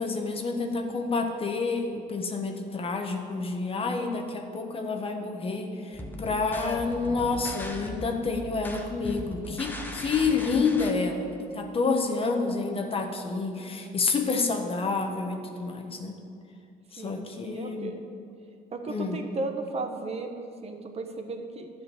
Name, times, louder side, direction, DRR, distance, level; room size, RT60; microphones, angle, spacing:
voice 1, 0.0-16.2 16.9-17.9 18.9-19.2, left 4 dB, 35° left, 4 dB, 1.2 m, -29 dB
sound 1, 5.9-10.9, equal, 10° left, 1.1 m, -39 dB
voice 2, 13.6-14.0 17.0-18.0 18.7-21.7, right 3 dB, 40° right, 5 dB, 1.1 m, -36 dB
11.0 x 5.2 x 8.4 m, 2.4 s
cardioid pair, 110°, 17 cm